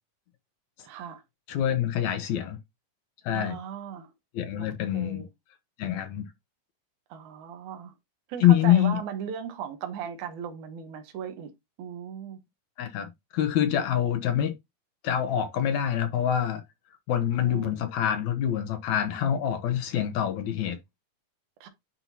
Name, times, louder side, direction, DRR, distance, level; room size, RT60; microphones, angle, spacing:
voice 1, 0.8-1.2 3.3-4.1 4.6-5.3 7.1-7.9 8.3-11.5 11.8-12.4 17.4-17.9 21.6-21.7, right 8 dB, 70° right, 2.4 m, -37 dB
voice 2, 1.5-2.6 3.2-3.6 4.3-5.2 5.8-6.3 8.4-9.0 12.8-14.5 15.0-16.6 17.1-20.8, left 10 dB, 70° left, 2.0 m, -25 dB
10.0 x 4.3 x 2.8 m
omnidirectional pair, 3.8 m